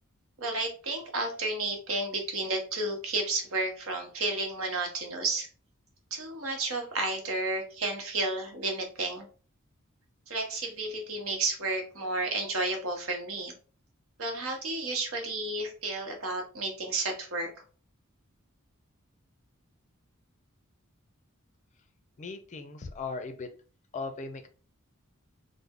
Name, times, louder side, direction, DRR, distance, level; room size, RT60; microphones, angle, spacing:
voice 1, 0.4-5.5 6.1-9.3 10.3-13.5 14.2-17.5, right 2 dB, 70° right, 2 dB, 1.0 m, -32 dB
voice 2, 22.2-23.5 23.9-24.5, left 4 dB, 35° left, 7 dB, 0.4 m, -38 dB
3.3 x 2.1 x 3.5 m, 0.38 s
head